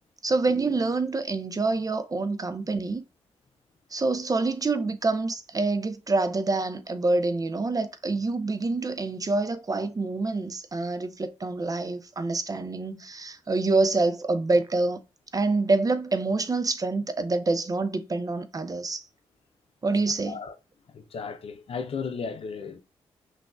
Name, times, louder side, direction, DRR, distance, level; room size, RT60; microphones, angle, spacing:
voice 1, 0.2-3.0 3.9-15.0 15.3-19.0 19.8-20.4, right 3 dB, 30° right, 0.5 m, -26 dB
voice 2, 20.9-22.8, left 5 dB, 60° left, 0.6 m, -34 dB
5.8 x 2.4 x 2.4 m
hypercardioid pair, 40°, 11 cm